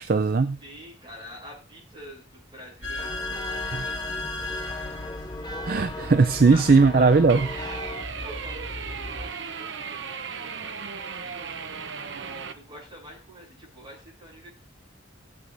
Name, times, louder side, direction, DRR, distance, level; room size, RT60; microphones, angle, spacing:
voice 1, 0.0-0.6 5.6-7.5, right 4 dB, 50° right, 10 dB, 0.4 m, -18 dB
voice 2, 0.6-4.9 6.2-7.2 7.7-7.8 8.2-10.8 11.2-11.6 12.5-14.5, equal, 25° right, -4 dB, 6.8 m, -46 dB
sound 1, 2.8-9.2, left 2 dB, 60° left, 2.9 m, -36 dB
sound 2, 3.0-8.1, left 2 dB, 20° left, 0.8 m, -38 dB
sound 3, 7.3-12.5, right 6 dB, 75° right, 0.8 m, -36 dB
17.5 x 8.6 x 2.6 m, 0.33 s
head